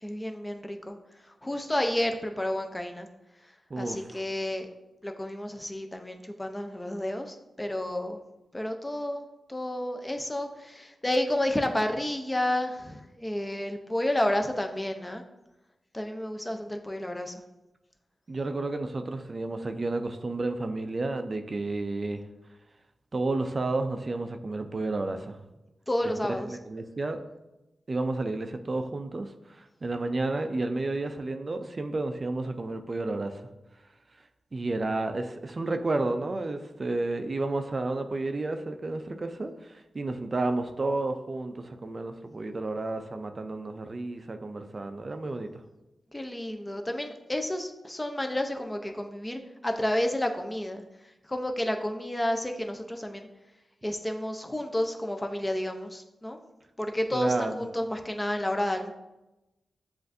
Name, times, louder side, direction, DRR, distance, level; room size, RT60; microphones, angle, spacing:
voice 1, 0.0-1.0 1.4-3.1 3.8-4.7 5.0-8.2 8.5-15.2 15.9-17.3 25.9-26.5 46.1-50.8 51.3-53.3 53.8-56.4 56.8-58.9, left 1 dB, 20° left, 4 dB, 0.6 m, -31 dB
voice 2, 3.7-4.2 18.3-22.2 23.1-25.4 26.4-27.2 27.9-33.4 34.5-45.5 57.1-57.6, right 2 dB, 45° right, 7 dB, 0.4 m, -31 dB
7.5 x 2.5 x 2.6 m, 1.0 s
cardioid pair, 45°, 0 cm